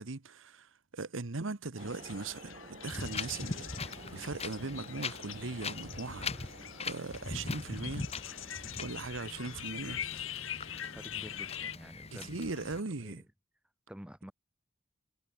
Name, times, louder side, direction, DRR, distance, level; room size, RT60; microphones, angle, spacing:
voice 1, 0.0-6.6 6.8-8.1 8.8-10.0 12.1-13.2, right 3 dB, 75° right, 1.1 m, -39 dB
sound 1, 1.7-8.9, right 2 dB, 40° right, 2.0 m, -53 dB
sound 2, 1.8-11.8, left 10 dB, 80° left, 2.1 m, -44 dB
Wind, 2.9-12.8, left 4 dB, 30° left, 1.3 m, -42 dB
voice 2, 10.9-12.6 13.0-13.2 13.9-14.3, equal, 5° right, 2.3 m, -49 dB
head